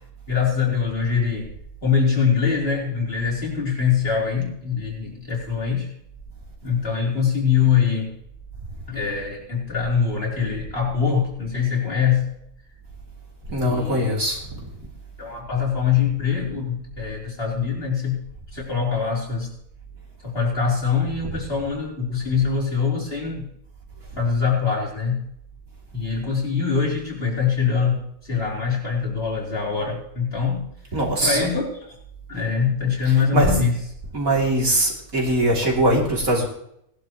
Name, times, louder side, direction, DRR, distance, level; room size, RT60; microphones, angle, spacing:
voice 1, 0.3-1.5 1.8-5.9 6.6-8.1 8.9-12.3 13.6-14.2 15.2-18.2 18.5-19.5 20.2-23.5 24.2-25.3 25.9-30.6 31.2-31.7 32.3-33.8, left 6 dB, 45° left, -4 dB, 4.6 m, -23 dB
voice 2, 13.5-14.7 21.2-21.4 30.9-31.5 33.1-33.6 34.1-36.5, right 1 dB, 70° right, -2 dB, 3.5 m, -22 dB
19.5 x 11.5 x 3.1 m, 0.74 s
omnidirectional pair, 1.5 m